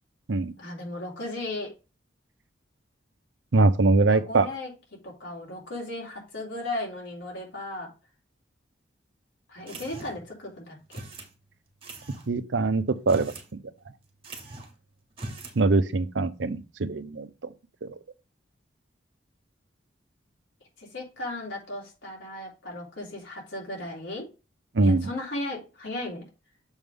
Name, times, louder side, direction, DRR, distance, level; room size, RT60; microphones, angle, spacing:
voice 1, 0.6-1.7 4.1-4.7 5.0-7.9 9.5-10.8 20.8-24.3 24.8-26.2, left 2 dB, 80° left, 3.6 m, -36 dB
voice 2, 3.5-4.5 12.3-13.3 15.6-17.3 17.8-17.9 24.7-25.1, right 3 dB, 80° right, 0.7 m, -22 dB
sound 1, 9.7-10.3 10.9-11.3 11.8-12.3 13.0-13.5 13.8-13.9 14.2-14.8 15.1-15.6, right 2 dB, 30° right, 1.7 m, -40 dB
7.1 x 3.6 x 5.3 m
head